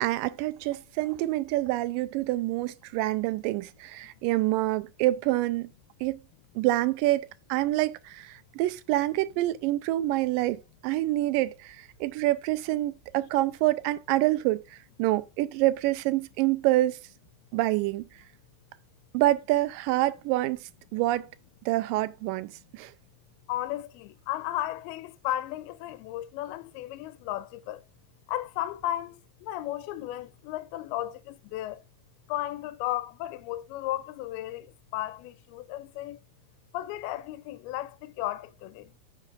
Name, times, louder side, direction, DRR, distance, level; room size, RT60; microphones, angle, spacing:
voice 1, 0.0-5.7 6.0-6.2 6.6-17.0 17.5-18.1 19.1-21.3 21.7-22.9, right 16 dB, 80° right, 2.0 m, -27 dB
voice 2, 23.5-27.8 28.3-31.8 32.3-36.2 36.7-39.0, left 14 dB, 90° left, 2.5 m, -34 dB
9.0 x 7.1 x 2.5 m
omnidirectional pair, 4.4 m